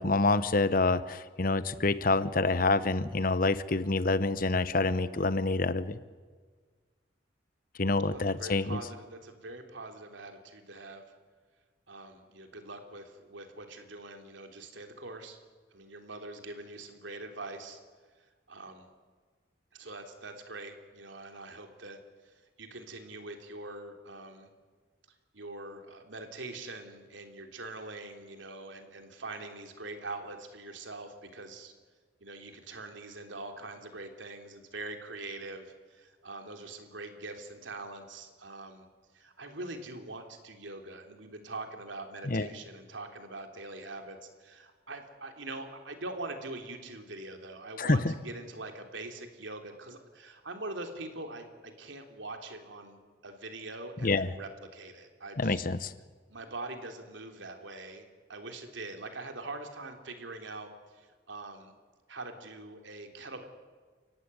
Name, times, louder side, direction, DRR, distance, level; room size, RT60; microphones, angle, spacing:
voice 1, 0.0-6.0 7.8-8.8 42.3-42.5 47.8-48.1 54.0-54.3 55.4-55.9, left 3 dB, 50° left, 14 dB, 1.0 m, -27 dB
voice 2, 8.1-11.0 11.9-15.4 15.7-17.8 18.5-18.9 19.7-24.5 25.3-31.7 32.2-38.8 39.1-55.6 56.3-61.7 62.1-63.4, right 2 dB, 90° right, 5 dB, 3.2 m, -43 dB
29.5 x 15.5 x 9.8 m, 1.5 s
head